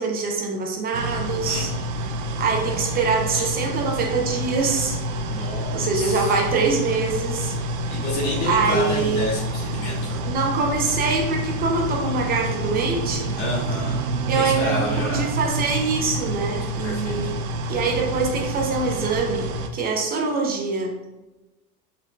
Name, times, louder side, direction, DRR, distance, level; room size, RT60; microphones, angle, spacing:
voice 1, 0.0-1.7 2.4-5.0 5.7-7.5 8.4-9.3 10.2-13.3 14.3-17.3 17.7-20.9, right 4 dB, 20° right, 1 dB, 0.5 m, -24 dB
sound 1, 0.9-19.7, right 1 dB, 60° right, 0.6 m, -28 dB
voice 2, 5.2-6.6 7.9-10.2 13.4-14.0 14.3-15.3 16.8-17.3, left 1 dB, 55° left, -5 dB, 1.5 m, -30 dB
5.0 x 4.0 x 2.2 m, 1.1 s
supercardioid pair, 145°, 45 cm